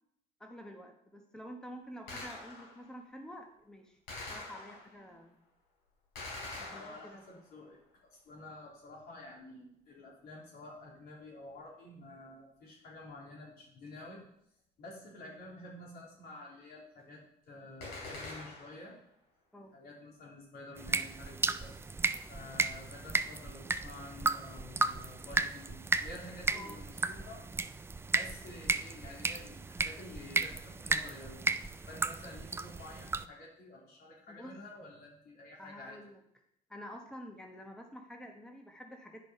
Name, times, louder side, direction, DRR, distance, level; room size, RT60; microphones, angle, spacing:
voice 1, 0.4-4.0 4.3-5.4 6.7-7.4 19.5-19.7 26.5-26.8 34.3-34.5 35.6-36.2 36.7-39.2, equal, 5° left, 2 dB, 1.1 m, -49 dB
Gunshot gunfire, 2.1-2.9 4.1-5.1 6.1-7.4 17.8-18.9, left 2 dB, 85° left, 4.0 m, -44 dB
voice 2, 6.6-7.8 8.1-14.2 14.8-17.2 17.5-19.0 19.7-21.8 22.3-27.4 28.1-31.4 31.9-36.0, left 2 dB, 65° left, -2 dB, 3.2 m, -50 dB
sound 1, 20.8-33.2, right 3 dB, 15° right, 0.3 m, -34 dB
9.9 x 5.3 x 5.4 m, 0.74 s
cardioid pair, 110°, 17 cm